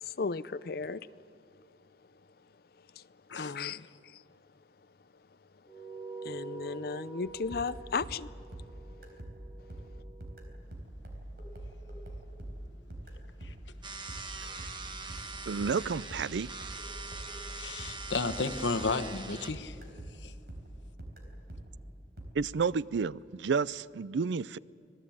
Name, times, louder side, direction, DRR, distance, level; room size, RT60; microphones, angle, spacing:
voice 1, 0.0-1.1 3.0-3.1 3.4-4.2 6.2-8.3, left 4 dB, 55° left, 0.5 m, -35 dB
sound 1, 5.7-10.5, right 4 dB, 5° left, 1.7 m, -47 dB
sound 2, 7.2-19.2 19.5-22.3, right 1 dB, 60° right, 4.0 m, -45 dB
sound 3, 13.8-19.5, right 4 dB, 25° right, 1.3 m, -43 dB
voice 2, 15.5-16.5 22.3-24.6, right 5 dB, 80° right, 0.5 m, -31 dB
voice 3, 17.6-19.8 20.2-20.3, left 3 dB, 85° left, 1.2 m, -33 dB
25.5 x 18.0 x 8.6 m
head